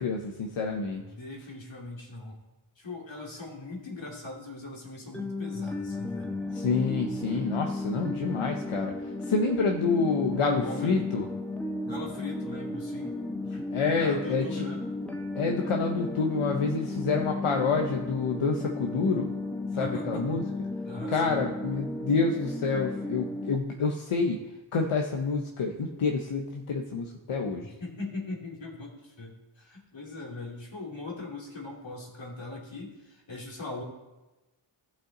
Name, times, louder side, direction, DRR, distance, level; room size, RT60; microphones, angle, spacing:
voice 1, 0.0-1.0 6.5-11.3 13.5-14.7 15.4-19.3 19.8-20.4 21.1-24.4 24.7-27.7, left 4 dB, 85° left, 2 dB, 0.9 m, -28 dB
voice 2, 1.0-2.4 2.8-6.4 10.5-11.1 11.8-13.2 13.9-14.8 19.7-20.4 20.8-21.4 27.6-33.8, left 2 dB, 65° left, -2 dB, 2.7 m, -40 dB
sound 1, 5.1-23.6, left 2 dB, 5° left, 0.9 m, -34 dB
15.5 x 5.6 x 3.8 m, 1.1 s
wide cardioid pair, 60°, 49 cm